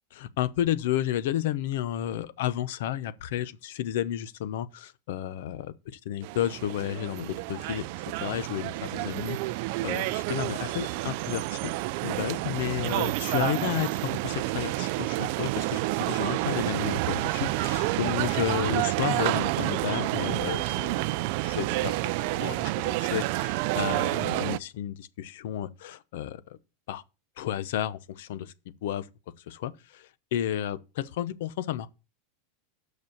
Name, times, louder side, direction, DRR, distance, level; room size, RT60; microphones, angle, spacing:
voice 1, 0.1-7.9 8.2-11.7 12.0-26.6 26.9-27.0 27.4-28.5 28.8-29.1 29.5-31.9, left 11 dB, 70° left, 0.7 m, -32 dB
sound 1, 6.2-24.6, right 20 dB, 55° right, 0.3 m, -29 dB
6.2 x 5.2 x 6.9 m
supercardioid pair, 155°, 0 cm